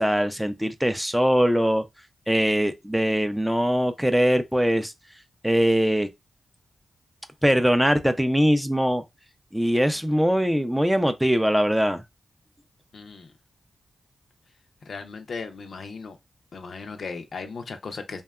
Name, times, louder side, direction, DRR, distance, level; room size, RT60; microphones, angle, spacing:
voice 1, 0.0-1.8 2.3-4.9 5.4-6.1 7.4-9.0 9.5-12.0, equal, 5° right, 0.3 m, -22 dB
voice 2, 12.9-13.3 14.9-16.2 16.5-18.2, left 4 dB, 65° left, 0.5 m, -36 dB
2.7 x 2.2 x 2.3 m
cardioid pair, 65°, 0 cm